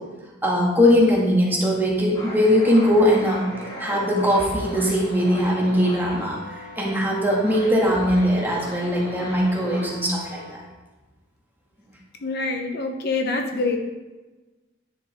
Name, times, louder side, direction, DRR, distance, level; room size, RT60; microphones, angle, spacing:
voice 1, 0.4-3.4 3.8-6.4 6.8-10.6, equal, 10° right, -4 dB, 2.0 m, -20 dB
sound 1, 2.1-10.5, equal, 20° left, 3.3 m, -38 dB
voice 2, 12.2-13.8, left 3 dB, 55° left, 4 dB, 1.0 m, -25 dB
10.5 x 7.0 x 3.7 m, 1.2 s
head